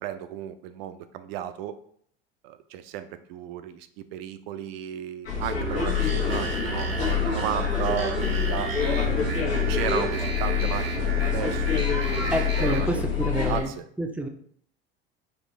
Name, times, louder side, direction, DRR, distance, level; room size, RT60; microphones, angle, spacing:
voice 1, 0.0-1.7 2.4-8.7 9.5-12.0 12.6-13.0 13.4-13.9, right 11 dB, 70° right, 11 dB, 0.5 m, -34 dB
sound 1, 5.3-13.6, left 6 dB, 80° left, 1.2 m, -26 dB
sound 2, 5.6-12.8, right 3 dB, 90° right, 0.9 m, -34 dB
voice 2, 12.3-13.7 14.0-14.3, right 1 dB, 5° right, 3 dB, 0.5 m, -28 dB
4.2 x 2.4 x 3.1 m, 0.63 s
hypercardioid pair, 80°, 30 cm